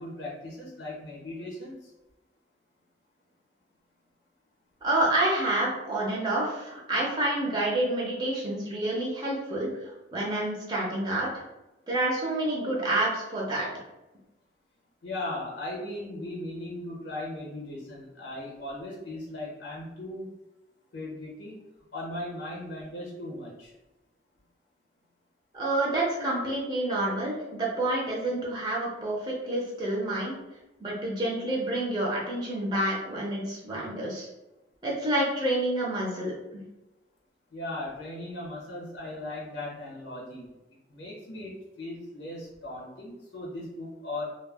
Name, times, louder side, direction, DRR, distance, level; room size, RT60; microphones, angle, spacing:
voice 1, 0.0-1.7 15.0-20.3 20.9-21.6 21.9-23.7 37.5-40.5 40.9-44.3, left 1 dB, 75° left, -4 dB, 0.7 m, -38 dB
voice 2, 4.8-11.3 11.9-13.7 25.5-30.3 30.8-34.3 34.8-36.3, right 1 dB, 25° right, -3 dB, 0.5 m, -28 dB
2.2 x 2.1 x 3.3 m, 0.99 s
head